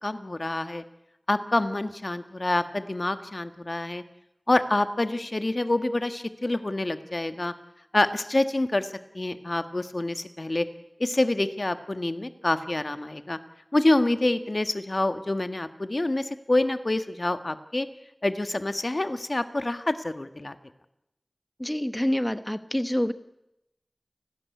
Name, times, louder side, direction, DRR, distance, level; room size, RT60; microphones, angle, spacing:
voice 1, 0.0-0.8 1.3-4.0 4.5-7.5 7.9-8.9 9.1-10.7 11.0-13.4 13.7-17.9 18.2-20.5, left 2 dB, 55° left, 9 dB, 1.5 m, -27 dB
voice 2, 21.6-23.1, equal, 15° left, 11 dB, 1.0 m, -27 dB
30.0 x 12.5 x 9.5 m, 0.87 s
wide cardioid pair, 40°, 0 cm